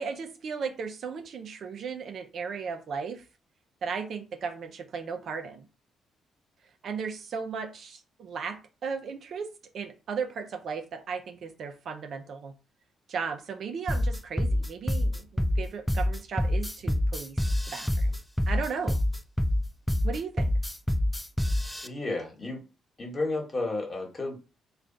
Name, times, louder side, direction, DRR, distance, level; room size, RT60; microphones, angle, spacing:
voice 1, 0.0-3.2 3.8-5.7 6.8-12.5 13.1-17.4 17.7-18.2 18.5-19.0 20.0-20.5, right 5 dB, 60° right, 0.6 m, -36 dB
sound 1, 13.9-21.9, left 1 dB, 5° left, 0.4 m, -26 dB
voice 2, 21.8-22.6 23.0-24.4, left 2 dB, 30° left, 1.3 m, -32 dB
3.3 x 2.4 x 3.9 m
cardioid pair, 90°, 0 cm